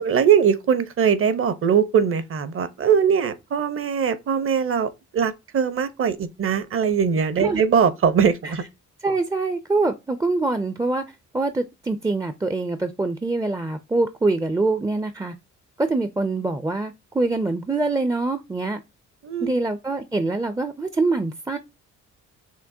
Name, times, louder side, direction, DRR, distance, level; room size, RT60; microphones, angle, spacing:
voice 1, 0.0-8.6 19.2-19.5, right 7 dB, 45° right, 0.7 m, -21 dB
voice 2, 9.0-11.0 11.3-15.3 15.8-18.8 19.4-21.6, right 3 dB, 10° right, 0.4 m, -24 dB
5.9 x 2.1 x 2.6 m
cardioid pair, 90°, 30 cm